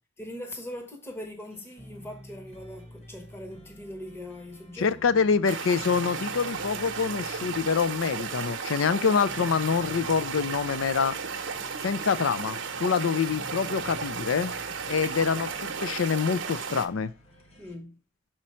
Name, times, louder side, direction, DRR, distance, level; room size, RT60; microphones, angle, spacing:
voice 1, 0.2-5.0 17.6-18.0, left 1 dB, 10° left, 0.9 m, -41 dB
sound 1, 1.4-17.7, equal, 35° left, 1.3 m, -50 dB
voice 2, 4.8-11.2 11.8-14.5 14.8-17.1, left 6 dB, 85° left, 0.5 m, -26 dB
sound 2, 5.5-16.9, right 5 dB, 65° right, 0.8 m, -34 dB
6.2 x 4.4 x 4.3 m
head